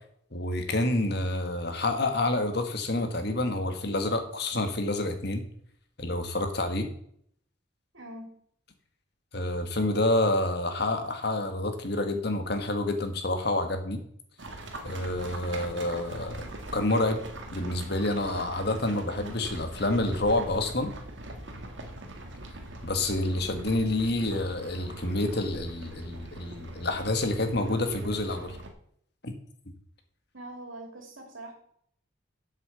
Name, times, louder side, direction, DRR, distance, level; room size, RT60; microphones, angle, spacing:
voice 1, 0.3-5.4 6.0-6.9 9.3-14.0 14.8-16.4 16.7-17.2 17.5-20.9 22.8-28.6 29.2-29.3, left 2 dB, 55° left, 6 dB, 1.6 m, -28 dB
voice 2, 7.9-8.3 30.3-31.5, right 1 dB, 85° right, 2 dB, 2.9 m, -42 dB
sound 1, 14.4-28.7, right 1 dB, 65° right, 1.8 m, -42 dB
8.1 x 7.7 x 7.0 m, 0.66 s
head